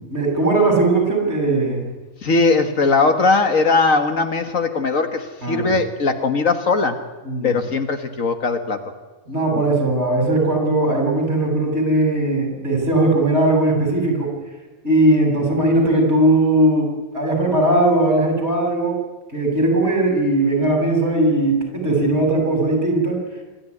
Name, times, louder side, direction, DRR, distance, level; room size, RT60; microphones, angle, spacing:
voice 1, 0.0-1.8 5.4-5.8 7.3-7.5 9.3-14.3 14.8-16.9 17.1-19.0 19.3-23.2, right 2 dB, 50° right, 0 dB, 7.2 m, -18 dB
voice 2, 2.2-7.0 7.4-8.8 9.5-9.6, left 3 dB, 65° left, 7 dB, 1.9 m, -19 dB
26.5 x 13.0 x 9.7 m, 1.2 s
omnidirectional pair, 1.5 m